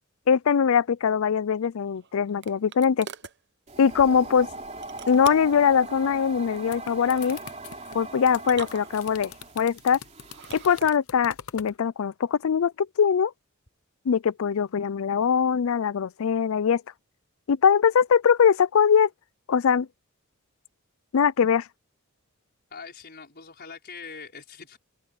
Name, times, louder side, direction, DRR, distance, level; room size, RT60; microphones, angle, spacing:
voice 1, 0.3-3.1 3.8-4.5 5.1-7.4 7.9-10.0 10.5-13.3 14.1-16.8 17.5-19.1 19.5-19.9 21.1-21.7, left 7 dB, 70° left, 0.4 m, -22 dB
sound 1, 1.6-3.4 4.8-5.7 7.0-7.4 8.4-9.4 10.2-11.0, right 7 dB, 55° right, 0.9 m, -43 dB
sound 2, 3.7-10.8, right 2 dB, 30° right, 3.1 m, -41 dB
sound 3, 6.4-11.8, left 8 dB, 85° left, 0.8 m, -44 dB
voice 2, 22.7-24.8, left 5 dB, 50° left, 5.6 m, -42 dB
head